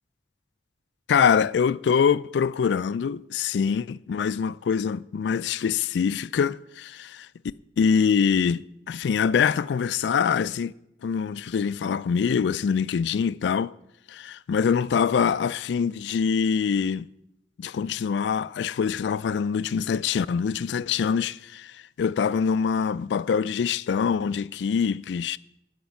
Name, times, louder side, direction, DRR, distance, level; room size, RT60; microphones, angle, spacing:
voice 1, 1.1-7.3 7.8-10.7 11.0-13.7 14.1-17.1 17.6-25.4, left 6 dB, 85° left, 0.3 m, -24 dB
11.5 x 5.2 x 7.0 m
head